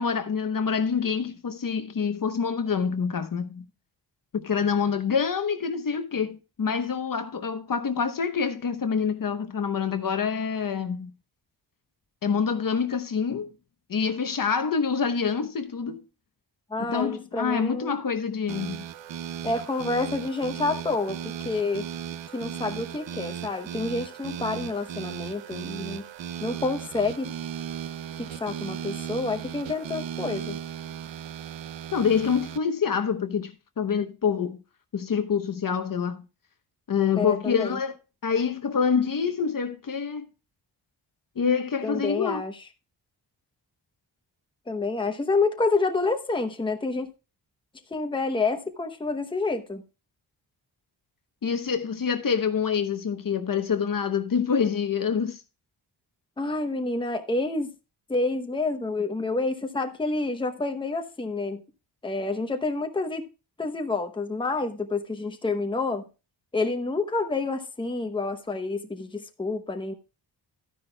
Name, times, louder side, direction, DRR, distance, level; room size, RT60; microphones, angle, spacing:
voice 1, 0.0-3.7 4.3-11.1 12.2-13.5 13.9-16.0 16.8-18.8 31.9-34.6 34.9-36.3 36.9-37.9 38.2-40.3 41.4-42.4 51.4-55.4, left 6 dB, 50° left, 0.9 m, -26 dB
voice 2, 16.7-17.9 19.4-21.9 22.3-26.1 26.4-27.3 28.2-30.6 37.2-37.8 41.8-42.6 44.7-47.1 47.9-49.8 56.4-57.7 58.1-61.6 62.0-63.2 63.6-66.0 66.5-69.9, left 3 dB, 10° left, 0.9 m, -28 dB
sound 1, 18.5-32.6, right 9 dB, 80° right, 0.7 m, -36 dB
12.5 x 9.9 x 2.2 m
wide cardioid pair, 150°, 44 cm